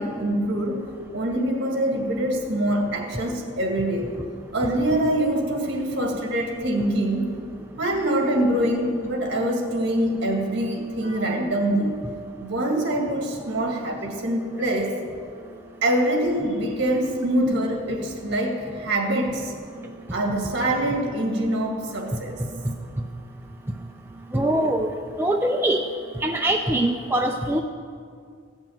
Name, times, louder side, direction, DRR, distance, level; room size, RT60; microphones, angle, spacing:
voice 1, 0.0-4.1 4.5-7.4 7.8-12.0 12.4-15.0 15.8-19.5 20.1-22.4, right 1 dB, 55° right, 1 dB, 2.1 m, -24 dB
voice 2, 24.3-24.9 25.2-25.8 26.2-27.6, right 1 dB, 10° right, 2 dB, 0.4 m, -22 dB
15.5 x 6.1 x 8.7 m, 2.3 s
head